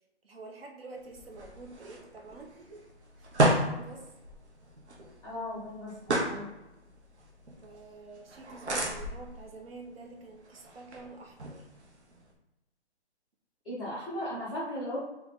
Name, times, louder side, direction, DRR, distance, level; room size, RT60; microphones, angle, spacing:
voice 1, 0.2-2.9 3.2-4.1 7.5-11.7, right 3 dB, 60° right, 2 dB, 1.0 m, -48 dB
sound 1, 1.0-12.3, right 1 dB, 80° right, 1.2 m, -34 dB
voice 2, 5.2-6.5 13.6-15.0, left 1 dB, ahead, -16 dB, 0.5 m, -37 dB
3.5 x 3.1 x 3.7 m, 0.97 s
hypercardioid pair, 160°, 33 cm